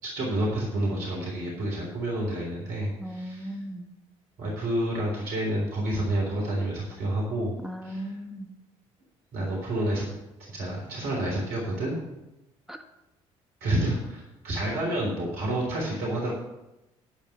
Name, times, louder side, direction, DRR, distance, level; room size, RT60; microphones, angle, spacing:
voice 1, 0.0-3.5 4.4-7.5 7.8-8.0 9.3-10.1 10.5-12.0 13.6-16.3, right 1 dB, 65° right, -3 dB, 3.6 m, -29 dB
voice 2, 3.0-3.9 7.6-8.5 12.7-12.8, equal, ahead, 5 dB, 1.4 m, -37 dB
11.5 x 5.4 x 8.7 m, 0.93 s
hypercardioid pair, 50°, 16 cm